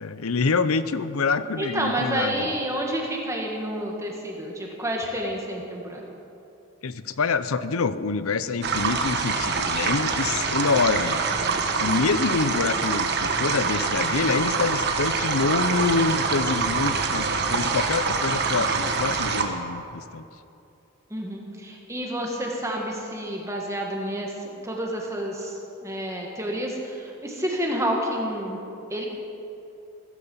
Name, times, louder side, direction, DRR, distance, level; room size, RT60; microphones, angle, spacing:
voice 1, 0.0-2.5 6.8-11.2 11.8-20.2, left 4 dB, 80° left, 14 dB, 0.7 m, -26 dB
voice 2, 1.6-6.0 21.1-25.5 25.8-28.6 28.9-29.1, right 1 dB, 15° right, 0 dB, 2.1 m, -29 dB
sound 1, 8.6-19.4, right 4 dB, 50° right, 1.3 m, -25 dB
16.0 x 15.5 x 5.6 m, 2.8 s
head